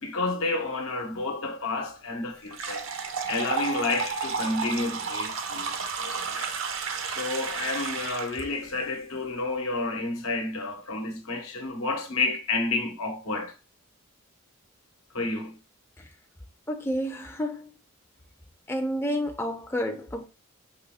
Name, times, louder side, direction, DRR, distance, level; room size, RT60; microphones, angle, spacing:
voice 1, 0.0-2.9 3.3-6.5 7.1-13.5 15.1-15.6, left 3 dB, 85° left, 1.1 m, -30 dB
sound 1, 2.5-8.4, right 5 dB, 70° right, 0.6 m, -32 dB
voice 2, 16.7-17.7 18.7-20.3, equal, 10° left, 0.4 m, -30 dB
5.5 x 3.0 x 2.2 m
head